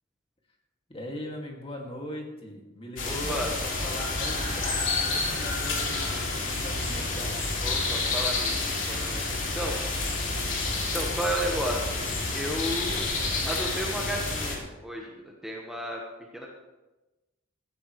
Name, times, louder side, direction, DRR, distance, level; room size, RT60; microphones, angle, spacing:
voice 1, 0.9-7.6, left 1 dB, 25° left, 0 dB, 2.3 m, -39 dB
sound 1, 3.0-14.6, left 3 dB, 60° left, 2.9 m, -29 dB
voice 2, 3.0-3.5 7.6-9.2 9.5-9.8 10.9-12.0 12.3-13.1 13.4-16.0 16.3-16.5, right 1 dB, ahead, -2 dB, 1.3 m, -33 dB
16.5 x 13.5 x 3.2 m, 1.1 s
head